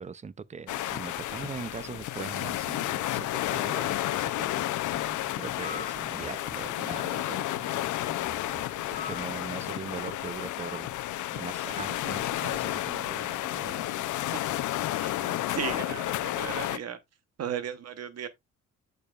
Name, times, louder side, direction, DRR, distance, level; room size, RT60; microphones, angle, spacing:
voice 1, 0.0-7.9 8.5-8.6 8.9-10.9 11.3-14.1, right 6 dB, 25° right, 0.5 m, -41 dB
sound 1, 0.7-16.8, left 15 dB, 75° left, 0.6 m, -31 dB
sound 2, 4.9-9.0, left 1 dB, 10° left, 1.3 m, -49 dB
sound 3, 5.6-6.0 8.9-9.4, left 6 dB, 25° left, 0.8 m, -40 dB
voice 2, 15.0-17.0 17.4-18.3, right 8 dB, 55° right, 1.1 m, -36 dB
8.3 x 6.6 x 2.4 m
cardioid pair, 90°, 30 cm